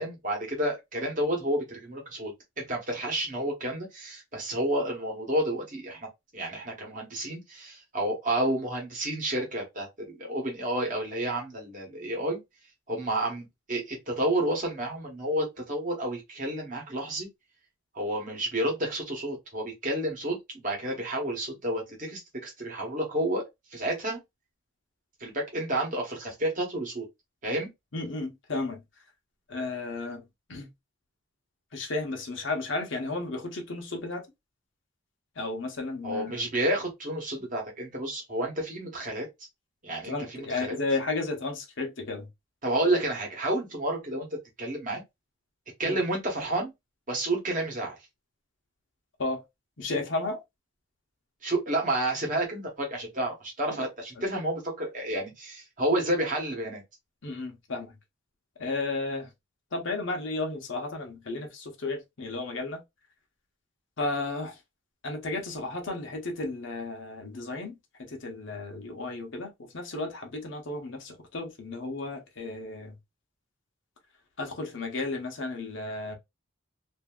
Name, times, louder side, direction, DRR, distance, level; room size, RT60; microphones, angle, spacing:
voice 1, 0.0-2.3 2.7-6.1 6.3-12.4 12.9-17.3 17.9-23.4 23.7-24.2 25.2-27.1 27.4-27.7 36.0-39.3 39.8-40.8 42.6-45.0 45.8-46.7 47.1-48.0 51.4-56.8, right 1 dB, 40° right, 1.1 m, -30 dB
voice 2, 27.9-28.8 29.5-30.2 30.5-30.7 31.7-34.3 35.4-36.5 40.1-42.3 45.8-46.0 49.2-49.4 49.8-50.4 53.8-53.9 54.2-54.3 57.2-58.0 58.6-59.3 59.7-62.8 64.0-64.6 65.0-67.8 68.1-73.0 74.4-76.2, left 3 dB, 60° left, 0.9 m, -33 dB
2.7 x 2.6 x 2.3 m
head